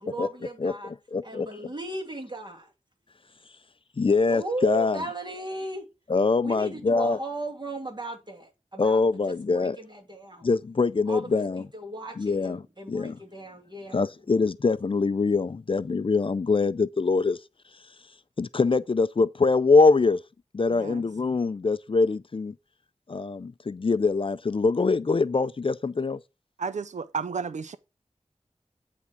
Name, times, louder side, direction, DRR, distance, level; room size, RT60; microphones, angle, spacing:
voice 1, 0.0-0.9 1.2-2.7 4.3-5.8 6.4-10.5 11.1-14.1, right 2 dB, 40° right, 2.7 m, -36 dB
voice 2, 0.6-1.5 4.0-5.0 6.1-7.2 8.8-9.8 10.4-11.6 12.2-12.6 12.9-13.2 13.9-17.4 18.4-20.2 20.5-22.5 23.1-26.2, left 4 dB, 50° left, 0.4 m, -23 dB
voice 3, 20.7-21.0 26.6-27.8, right 5 dB, 90° right, 0.4 m, -32 dB
9.5 x 3.6 x 5.8 m
wide cardioid pair, 55°, 12 cm